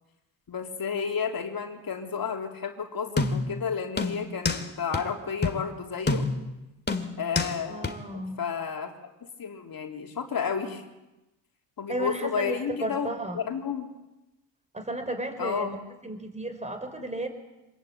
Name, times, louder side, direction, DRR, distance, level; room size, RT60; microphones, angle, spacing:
voice 1, 0.5-6.3 7.2-8.9 9.4-10.8 11.8-13.9 15.4-15.7, left 6 dB, 45° left, 3 dB, 3.4 m, -32 dB
sound 1, 3.2-3.6 4.0-4.6 4.9-5.0 5.4-5.6 6.1-6.5 6.9-7.5 7.8-7.9, left 3 dB, 20° left, 2.5 m, -27 dB
voice 2, 7.7-8.4 11.9-13.4 14.7-15.8 16.0-17.3, right 1 dB, 15° right, 7 dB, 5.0 m, -33 dB
26.0 x 20.0 x 9.0 m, 1.0 s
cardioid pair, 95°, 49 cm